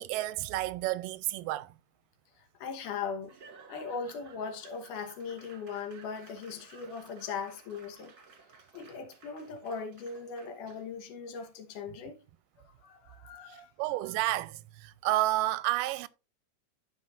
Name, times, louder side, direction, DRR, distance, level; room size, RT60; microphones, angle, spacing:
voice 1, 0.0-1.7 13.5-16.1, right 16 dB, 85° right, 2.3 m, -31 dB
voice 2, 2.4-3.3 3.7-8.1 8.7-12.2 12.6-13.7 14.1-14.2, left 5 dB, 75° left, 2.6 m, -39 dB
Laughter / Applause / Crowd, 3.2-11.0, right 5 dB, 40° right, 1.4 m, -56 dB
13.0 x 6.0 x 2.5 m
omnidirectional pair, 3.9 m